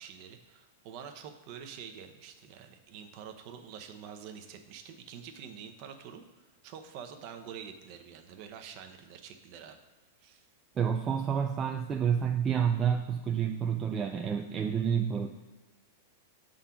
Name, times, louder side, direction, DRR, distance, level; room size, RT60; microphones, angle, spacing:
voice 1, 0.0-9.8 10.2-10.4, right 7 dB, 40° right, 6 dB, 0.8 m, -47 dB
voice 2, 10.8-15.3, right 7 dB, 20° right, 3 dB, 0.4 m, -29 dB
7.1 x 3.8 x 5.7 m, 1.2 s
supercardioid pair, 150°, 0 cm